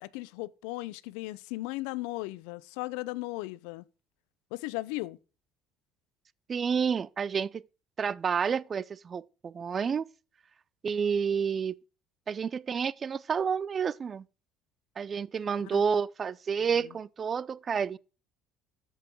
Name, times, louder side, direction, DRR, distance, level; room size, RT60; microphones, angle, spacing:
voice 1, 0.0-3.8 4.5-5.2 15.7-15.8 16.7-16.9, left 20 dB, 80° left, 0.5 m, -36 dB
voice 2, 6.5-7.6 8.0-10.1 10.8-11.8 12.3-14.2 15.0-18.0, right 6 dB, 35° right, 0.5 m, -29 dB
13.5 x 5.6 x 4.6 m
supercardioid pair, 80°, 0 cm